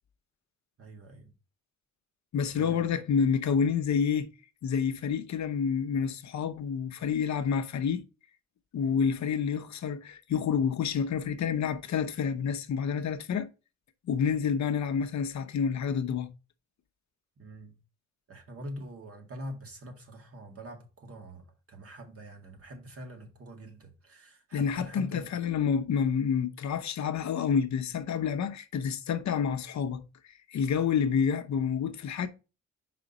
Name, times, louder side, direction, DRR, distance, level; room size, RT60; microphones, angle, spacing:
voice 1, 0.8-1.3 2.5-3.0 17.4-17.8 18.3-25.3, equal, 45° right, 1.9 m, -44 dB
voice 2, 2.3-4.3 4.6-8.0 8.7-13.5 14.0-16.3 24.5-32.3, left 7 dB, 60° left, 0.8 m, -28 dB
5.1 x 4.2 x 5.2 m
cardioid pair, 90°, 32 cm